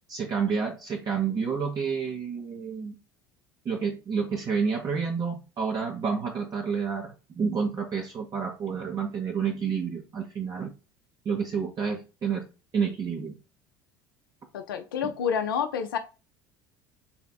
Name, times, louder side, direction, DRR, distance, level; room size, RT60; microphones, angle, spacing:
voice 1, 0.1-3.0 3.6-10.7 11.3-12.4 12.7-13.3 15.0-15.1, right 6 dB, 40° right, 0.7 m, -29 dB
voice 2, 14.5-16.0, left 7 dB, 80° left, 0.4 m, -28 dB
4.2 x 3.3 x 2.3 m
hypercardioid pair, 70°, 11 cm